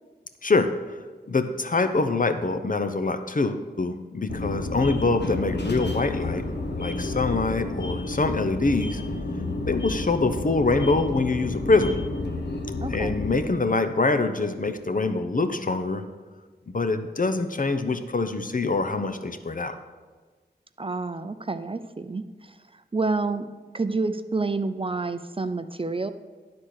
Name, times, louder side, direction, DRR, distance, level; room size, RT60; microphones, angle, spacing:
voice 1, 0.4-1.0 1.3-6.4 6.8-9.0 9.6-12.0 12.9-16.0 16.7-19.8, left 3 dB, 50° left, 9 dB, 0.7 m, -24 dB
sound 1, 4.3-13.4, left 2 dB, 80° left, 1.2 m, -31 dB
voice 2, 12.8-13.2 20.8-22.5 22.9-23.5 23.7-26.1, right 3 dB, 30° right, 10 dB, 0.4 m, -28 dB
11.5 x 4.3 x 6.4 m, 1.4 s
wide cardioid pair, 65°, 18 cm